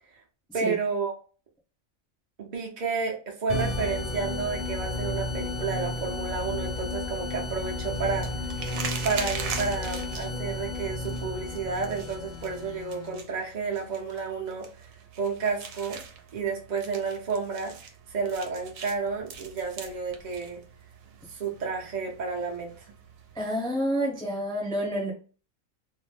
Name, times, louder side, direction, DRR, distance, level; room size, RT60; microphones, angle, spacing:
voice 1, 0.5-1.1 2.4-8.3 9.0-14.9 15.2-16.0 16.3-17.7 18.1-20.6 21.3-22.9, right 5 dB, 45° right, 0.6 m, -31 dB
sound 1, 3.5-12.9, left 2 dB, 40° left, 0.7 m, -33 dB
sound 2, 4.9-23.4, right 6 dB, 90° right, 1.0 m, -43 dB
Bowed string instrument, 10.1-13.5, left 7 dB, 75° left, 1.0 m, -49 dB
voice 2, 23.3-25.1, equal, 5° left, 0.6 m, -28 dB
2.6 x 2.1 x 3.2 m
omnidirectional pair, 1.4 m